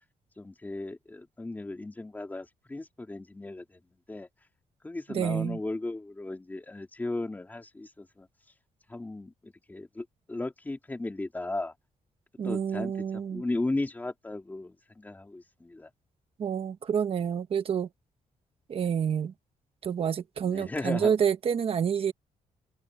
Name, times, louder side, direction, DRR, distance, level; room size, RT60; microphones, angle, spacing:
voice 1, 0.4-3.8 4.1-4.3 4.8-8.3 8.9-11.7 12.4-15.9 20.4-21.1, left 2 dB, 15° left, 3.4 m, -36 dB
voice 2, 5.1-5.6 12.4-13.4 16.4-17.9 18.7-19.3 19.8-22.1, right 7 dB, 45° right, 1.2 m, -28 dB
wide cardioid pair, 160°, 13 cm